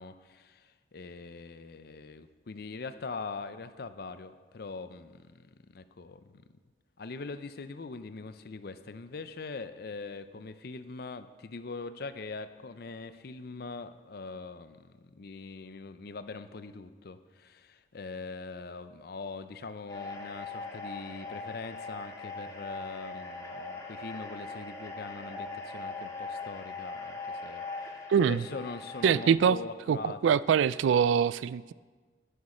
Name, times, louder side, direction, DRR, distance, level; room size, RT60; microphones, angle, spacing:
voice 1, 0.0-6.4 7.0-30.4, left 4 dB, 55° left, 12 dB, 0.5 m, -42 dB
sound 1, 19.9-29.3, left 3 dB, 20° left, 1.6 m, -41 dB
voice 2, 28.1-28.4 29.0-29.6 29.9-31.7, right 7 dB, 85° right, 18 dB, 0.3 m, -24 dB
10.0 x 9.6 x 4.3 m, 1.4 s
head